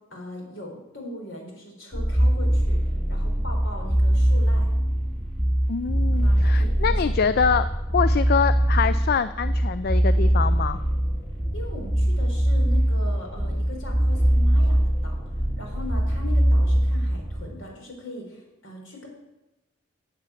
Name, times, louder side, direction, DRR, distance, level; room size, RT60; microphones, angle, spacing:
voice 1, 0.1-2.8 3.1-4.7 6.1-7.4 11.5-19.1, left 1 dB, 65° left, 1 dB, 4.0 m, -40 dB
sound 1, 1.9-17.4, equal, 5° left, 5.2 m, -22 dB
voice 2, 5.7-7.7 7.9-10.8, left 6 dB, 50° left, 13 dB, 0.4 m, -25 dB
10.5 x 8.1 x 8.3 m, 1.0 s
head